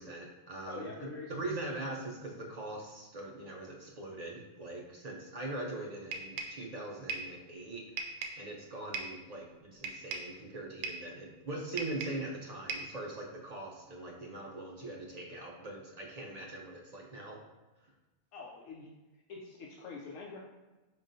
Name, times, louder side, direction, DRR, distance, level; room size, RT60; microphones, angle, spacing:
voice 1, 0.0-0.9 1.3-17.4, right 2 dB, 50° right, -1 dB, 0.5 m, -42 dB
voice 2, 0.7-1.3 18.3-18.9 19.3-20.4, left 4 dB, 80° left, -2 dB, 1.0 m, -45 dB
sound 1, 6.1-6.6 7.1-7.4 8.0-8.4 8.9-9.2 9.8-10.3 10.8-11.1 11.8-12.3 12.7-13.0, right 4 dB, 90° right, 1.0 m, -38 dB
5.2 x 3.7 x 2.6 m, 1.1 s
omnidirectional pair, 1.3 m